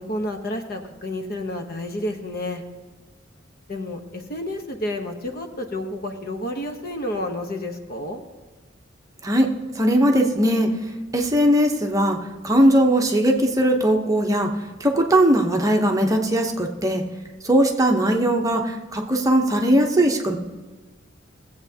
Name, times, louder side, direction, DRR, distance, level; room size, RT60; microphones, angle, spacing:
voice 1, 0.0-2.6 3.7-8.2, left 1 dB, 50° left, 5 dB, 1.0 m, -30 dB
voice 2, 9.8-10.7 11.1-12.2 12.4-14.5 14.8-17.0 17.4-20.3, right 1 dB, 20° right, 2 dB, 0.8 m, -19 dB
17.5 x 7.9 x 2.8 m, 1.3 s
head